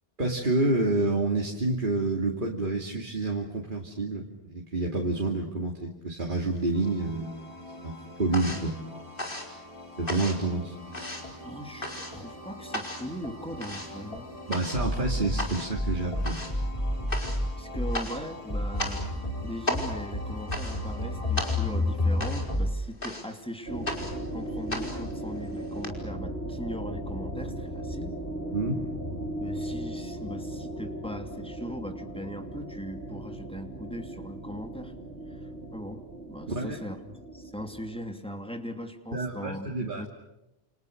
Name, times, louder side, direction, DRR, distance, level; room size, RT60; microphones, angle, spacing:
voice 1, 0.2-8.8 10.0-10.8 14.5-16.5 28.5-28.8 36.5-36.8 39.1-40.0, right 2 dB, 50° right, 0 dB, 2.8 m, -28 dB
sound 1, 6.5-7.3 7.6-25.9, left 1 dB, 55° left, 4.5 m, -37 dB
sound 2, 6.8-22.7, left 1 dB, 35° left, 3.7 m, -33 dB
voice 2, 11.4-14.3 17.6-19.0 19.4-28.2 29.4-34.9 35.3-40.1, equal, 5° left, 5 dB, 2.7 m, -39 dB
sound 3, 23.7-38.0, right 1 dB, 80° right, 3.5 m, -37 dB
29.0 x 29.0 x 6.5 m, 0.92 s
omnidirectional pair, 1.1 m